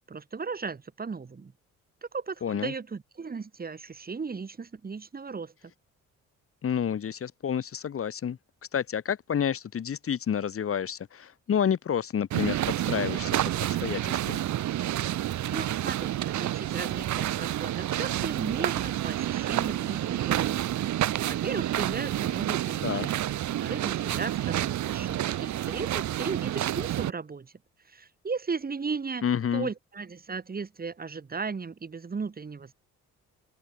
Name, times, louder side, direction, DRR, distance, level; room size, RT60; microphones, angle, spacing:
voice 1, 0.1-1.5 2.1-5.5 15.5-23.2 23.6-27.5 27.9-29.2 29.5-32.7, right 5 dB, 30° right, 2.3 m, -36 dB
voice 2, 2.4-2.7 6.6-8.4 8.7-12.6 12.9-13.3 13.8-14.4 22.8-23.1 29.2-29.7, left 8 dB, 50° left, 1.6 m, -29 dB
sound 1, 12.3-27.1, right 13 dB, 70° right, 1.3 m, -29 dB
open air
cardioid pair, 90°, 30 cm